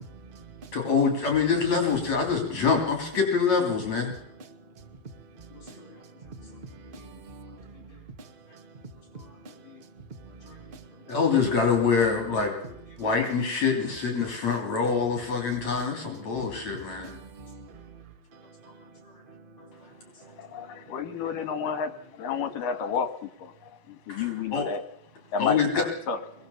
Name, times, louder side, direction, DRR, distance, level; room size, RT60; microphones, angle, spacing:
voice 1, 0.1-0.8 4.4-11.1 15.7-15.8 16.3-21.7, right 3 dB, 25° right, 1.1 m, -48 dB
voice 2, 0.7-4.1 5.8-5.9 9.1-9.2 10.5-10.6 11.1-17.2 24.1-24.7 25.4-25.8, left 5 dB, 50° left, 4.4 m, -25 dB
voice 3, 20.4-21.9 22.2-23.1 24.1-24.8 25.3-26.2, left 6 dB, 70° left, 3.2 m, -30 dB
25.5 x 21.0 x 7.2 m
omnidirectional pair, 4.2 m